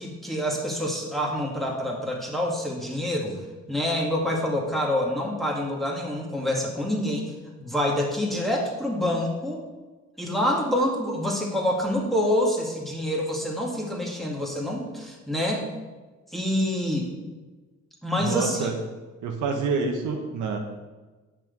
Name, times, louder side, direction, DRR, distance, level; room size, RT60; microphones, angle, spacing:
voice 1, 0.0-3.4 3.7-7.3 7.6-9.6 10.2-15.7 16.3-17.1 18.0-18.7, left 1 dB, ahead, -2 dB, 2.2 m, -26 dB
voice 2, 18.2-18.7 19.2-20.6, right 4 dB, 80° right, 3 dB, 1.3 m, -27 dB
8.6 x 6.1 x 5.3 m, 1.2 s
cardioid pair, 90°, 30 cm